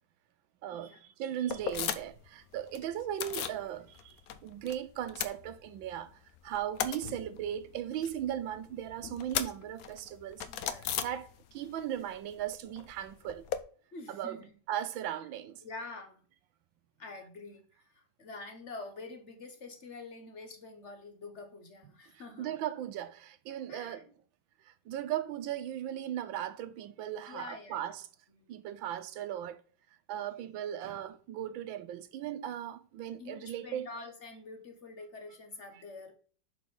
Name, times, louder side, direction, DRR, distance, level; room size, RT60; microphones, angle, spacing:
voice 1, 0.6-4.2 4.4-6.1 6.4-10.4 11.0-13.5 14.1-14.4 14.7-15.6 22.1-24.0 24.7-28.0 28.5-29.6 30.1-33.9, right 11 dB, 75° right, 1.4 m, -37 dB
sound 1, 1.5-2.3 2.5-3.6 4.0-4.8 5.0-6.0 6.3-11.7 12.0-13.6, left 9 dB, 80° left, 0.8 m, -38 dB
voice 2, 10.5-11.0 13.9-14.5 15.6-16.2 17.0-22.5 23.7-24.1 27.3-27.8 28.3-28.5 33.2-36.1, left 3 dB, 50° left, 0.9 m, -46 dB
6.2 x 4.7 x 5.3 m
omnidirectional pair, 2.2 m